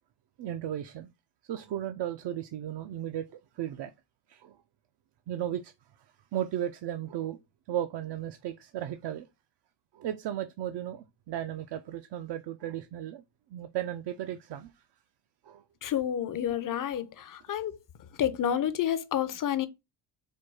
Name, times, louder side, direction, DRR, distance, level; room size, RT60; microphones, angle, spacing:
voice 1, 0.4-1.1 1.4-3.3 3.5-3.9 4.3-4.6 5.3-5.7 6.3-7.4 7.7-9.3 9.9-13.2 13.5-14.8 15.4-15.6, right 11 dB, 60° right, 0.5 m, -35 dB
voice 2, 15.8-17.8 18.2-19.7, left 10 dB, 45° left, 0.6 m, -29 dB
4.5 x 2.3 x 4.6 m
cardioid pair, 120°, 48 cm